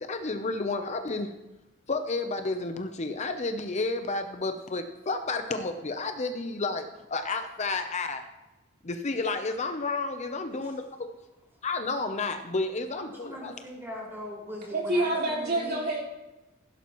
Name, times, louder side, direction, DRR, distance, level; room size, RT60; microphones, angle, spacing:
voice 1, 0.0-1.3 1.9-8.3 8.8-11.1 11.6-13.5, left 3 dB, 35° left, 7 dB, 0.7 m, -31 dB
voice 2, 12.9-15.8, equal, 15° right, -4 dB, 5.0 m, -40 dB
voice 3, 14.7-16.0, right 1 dB, 55° right, -5 dB, 3.9 m, -27 dB
16.0 x 11.0 x 3.1 m, 1.0 s
head